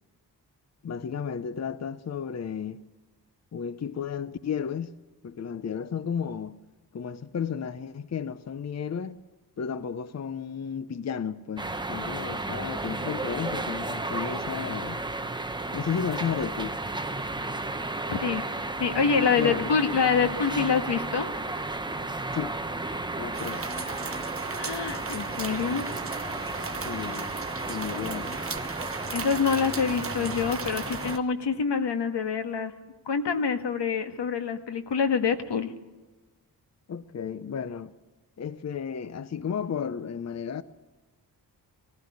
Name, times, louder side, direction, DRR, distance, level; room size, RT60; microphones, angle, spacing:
voice 1, 0.8-2.8 3.5-4.9 5.2-6.6 6.9-9.2 9.6-15.0 15.7-16.8 19.4-19.7 22.3-22.6 23.2-23.6 26.8-27.3 27.7-28.4 36.9-37.9 38.4-40.6, left 7 dB, 40° left, 0.6 m, -33 dB
sound 1, 11.6-31.2, right 2 dB, 10° right, 0.9 m, -33 dB
voice 2, 18.1-18.4 18.8-21.3 24.6-25.9 29.1-32.7 33.0-35.7, left 6 dB, 85° left, 1.7 m, -26 dB
sound 2, 23.3-31.2, right 5 dB, 35° right, 1.0 m, -37 dB
19.0 x 15.5 x 9.7 m
wide cardioid pair, 160°, 41 cm